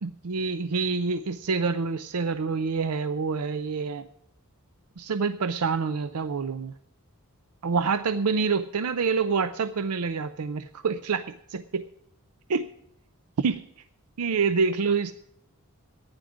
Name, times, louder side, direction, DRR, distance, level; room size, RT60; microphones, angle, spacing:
voice 1, 0.0-4.1 5.0-6.7 7.6-11.8 12.5-12.7 13.4-13.6 14.2-15.1, right 5 dB, 90° right, 11 dB, 0.5 m, -27 dB
15.0 x 9.9 x 5.0 m, 0.78 s
head